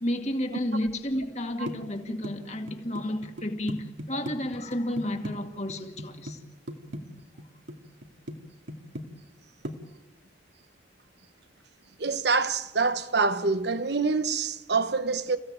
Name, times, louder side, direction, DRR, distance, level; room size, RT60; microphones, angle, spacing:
voice 1, 0.0-6.4, left 1 dB, 35° left, 2.2 m, -31 dB
sound 1, 1.7-5.3 5.7-6.4 6.7-7.8 8.0-8.4 8.7-9.4 9.6-9.7, equal, 80° right, 2.3 m, -37 dB
voice 2, 12.0-15.4, right 4 dB, 60° right, 1.1 m, -26 dB
29.0 x 16.0 x 8.9 m
head